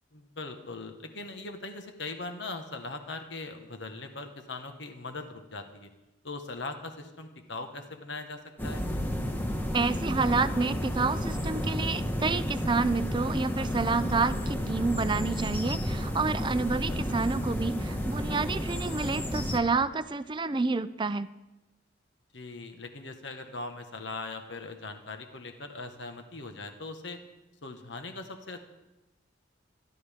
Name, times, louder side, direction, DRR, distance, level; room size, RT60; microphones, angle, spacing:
voice 1, 0.1-5.9 6.2-8.8 22.3-27.2 27.6-28.6, left 3 dB, 70° left, 6 dB, 1.5 m, -40 dB
sound 1, 8.6-19.6, equal, 10° left, 1.4 m, -31 dB
voice 2, 9.7-21.3, right 4 dB, 25° right, 13 dB, 0.5 m, -29 dB
25.0 x 12.0 x 3.7 m, 1.0 s
head